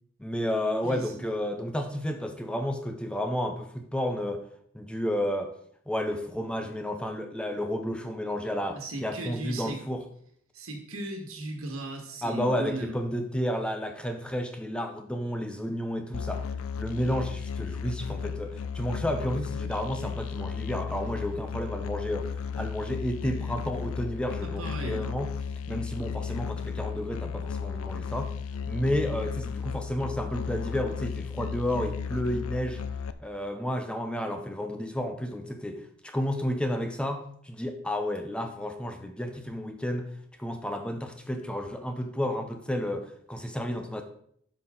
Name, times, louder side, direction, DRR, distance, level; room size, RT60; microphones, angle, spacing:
voice 1, 0.2-4.4 4.7-5.5 5.9-10.0 12.2-16.5 16.8-25.3 25.7-28.3 28.7-32.8 33.2-40.1 40.4-44.0, equal, 5° left, 6 dB, 0.6 m, -31 dB
voice 2, 0.8-1.2 8.7-9.8 10.5-12.9 24.4-25.1, right 2 dB, 80° right, 3 dB, 1.8 m, -36 dB
Musical instrument, 16.1-33.1, left 6 dB, 80° left, 0.4 m, -34 dB
9.9 x 5.8 x 3.8 m, 0.65 s
head